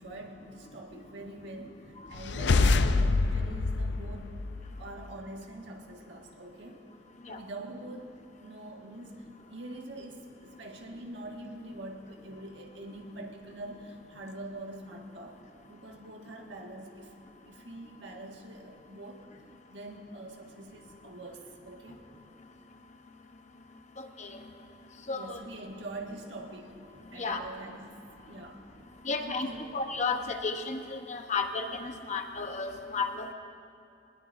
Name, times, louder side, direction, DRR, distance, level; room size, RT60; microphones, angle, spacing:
voice 1, 0.0-4.4 4.8-6.8 7.3-8.1 8.4-15.4 15.7-17.2 17.5-19.3 19.7-22.0 25.1-26.7 27.1-28.0 28.3-28.6 29.2-29.8, right 1 dB, 85° right, 1 dB, 1.7 m, -44 dB
sound 1, 2.1-4.9, left 3 dB, 70° left, 0.5 m, -26 dB
voice 2, 24.0-24.3 25.1-25.4 27.2-27.4 29.0-33.3, left 4 dB, 40° left, 5 dB, 0.9 m, -33 dB
20.5 x 20.5 x 2.6 m, 2.7 s
head